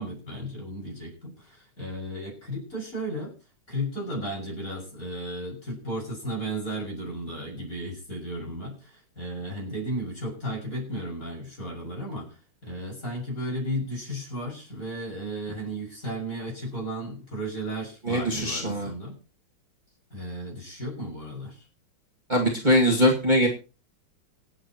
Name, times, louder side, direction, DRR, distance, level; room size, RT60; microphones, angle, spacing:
voice 1, 0.0-3.3 3.7-19.2 20.1-21.7, equal, 40° left, -1 dB, 6.7 m, -34 dB
voice 2, 18.0-18.9 22.3-23.5, equal, 20° right, -1 dB, 2.4 m, -22 dB
26.0 x 8.8 x 3.0 m, 0.32 s
omnidirectional pair, 2.2 m